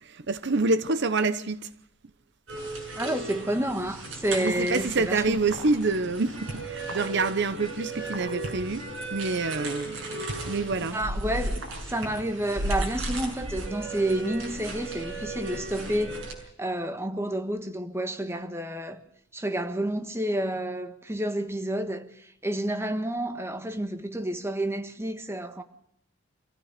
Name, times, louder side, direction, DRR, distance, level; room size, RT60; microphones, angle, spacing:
voice 1, 0.0-1.7 4.4-8.9 9.1-11.0, right 3 dB, 60° right, 0.9 m, -27 dB
sound 1, 2.5-16.3, right 1 dB, 75° right, 7.0 m, -35 dB
voice 2, 2.9-5.4 10.8-16.3 16.6-19.0 19.3-25.6, right 1 dB, 15° right, 1.4 m, -30 dB
25.5 x 15.5 x 6.6 m
head